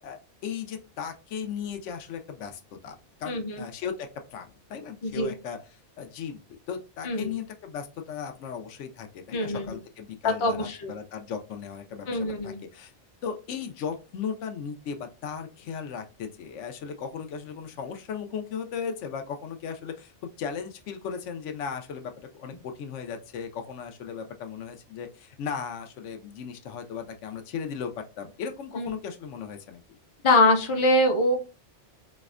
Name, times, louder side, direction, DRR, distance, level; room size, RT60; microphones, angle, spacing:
voice 1, 0.0-2.9 3.2-6.4 6.7-12.9 13.2-20.1 20.4-29.8, left 7 dB, 85° left, 6 dB, 0.9 m, -36 dB
voice 2, 3.3-3.6 5.0-5.3 7.0-7.3 9.3-9.8 10.2-10.9 12.1-12.6 28.8-28.9 30.2-31.3, left 1 dB, 35° left, 4 dB, 0.5 m, -23 dB
4.1 x 2.1 x 2.4 m, 0.31 s
omnidirectional pair, 1.2 m